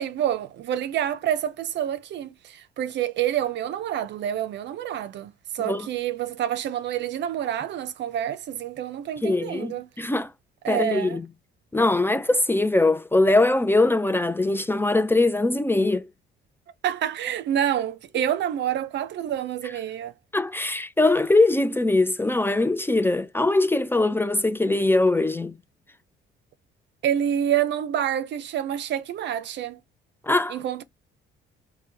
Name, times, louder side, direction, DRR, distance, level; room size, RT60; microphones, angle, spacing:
voice 1, 0.0-9.9 10.6-11.2 16.8-20.1 27.0-29.8 30.5-30.8, right 10 dB, 60° right, 0.6 m, -27 dB
voice 2, 9.2-10.3 10.7-11.3 11.7-16.1 20.3-25.5 30.3-30.6, left 2 dB, 10° left, 0.4 m, -22 dB
4.4 x 2.2 x 3.3 m
cardioid pair, 95°, 21 cm